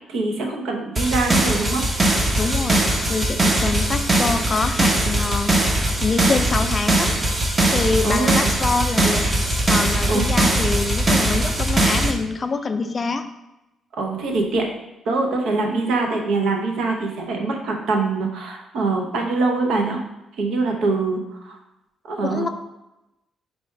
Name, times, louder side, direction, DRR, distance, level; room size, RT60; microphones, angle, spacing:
voice 1, 0.1-1.8 8.0-8.5 10.1-10.3 14.0-14.7 15.1-20.0 20.4-21.6 22.1-22.5, right 3 dB, 80° right, 2 dB, 0.7 m, -23 dB
sound 1, 1.0-12.1, right 1 dB, 30° right, 0.6 m, -20 dB
voice 2, 2.4-5.5 6.0-7.1 7.7-9.3 9.7-13.2 22.2-22.5, left 4 dB, 35° left, 8 dB, 0.3 m, -25 dB
4.1 x 2.3 x 4.4 m, 0.94 s
cardioid pair, 90°, 0 cm